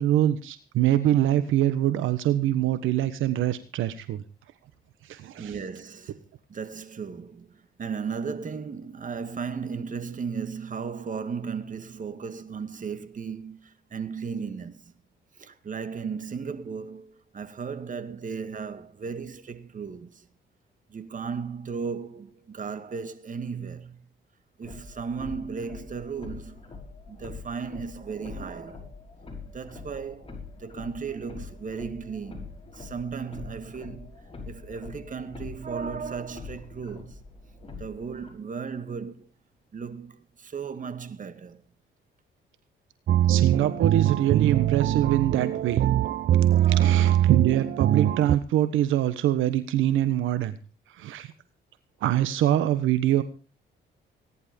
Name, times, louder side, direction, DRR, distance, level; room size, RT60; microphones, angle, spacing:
voice 1, 0.0-4.2 5.1-5.5 43.3-45.8 46.8-50.6 51.0-51.3 52.0-53.2, right 12 dB, 85° right, 1.3 m, -24 dB
voice 2, 5.4-14.9 15.4-20.3 20.9-24.0 24.6-26.6 27.1-28.9 29.5-32.5 32.7-37.2 37.8-39.3 39.7-41.6 46.5-47.3, right 5 dB, 40° right, 2.1 m, -36 dB
sound 1, 24.6-38.3, left 4 dB, 30° left, 5.5 m, -44 dB
sound 2, 43.1-48.4, right 12 dB, 60° right, 0.6 m, -22 dB
18.0 x 11.0 x 5.3 m
cardioid pair, 90°, 20 cm